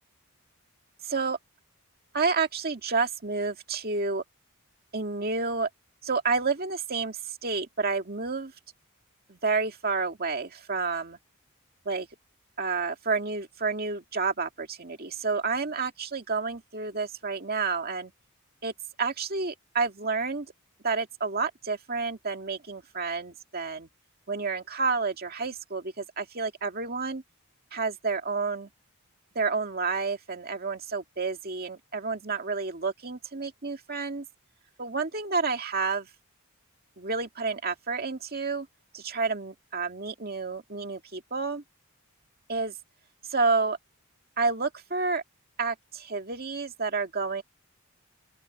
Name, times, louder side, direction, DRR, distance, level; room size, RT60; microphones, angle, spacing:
voice 1, 1.0-1.4 2.1-4.2 4.9-5.7 6.0-8.5 9.3-11.2 11.9-12.1 12.6-18.1 18.6-18.7 19.0-20.5 20.8-23.9 24.3-27.2 27.7-28.7 29.4-34.2 34.8-36.1 37.0-38.7 38.9-41.6 42.5-42.7 43.3-43.8 44.4-45.2 45.6-47.4, right 4 dB, 45° right, 2.1 m, -30 dB
open air
head